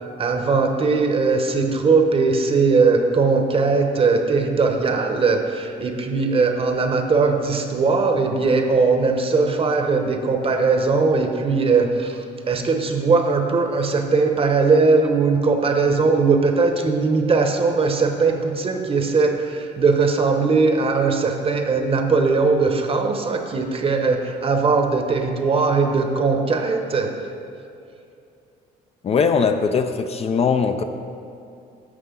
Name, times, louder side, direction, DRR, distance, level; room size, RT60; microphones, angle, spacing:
voice 1, 0.2-27.2, right 4 dB, 35° right, 5 dB, 1.0 m, -19 dB
voice 2, 29.0-30.8, left 5 dB, 35° left, 7 dB, 0.5 m, -20 dB
11.0 x 7.7 x 3.8 m, 2.5 s
cardioid pair, 110°, 17 cm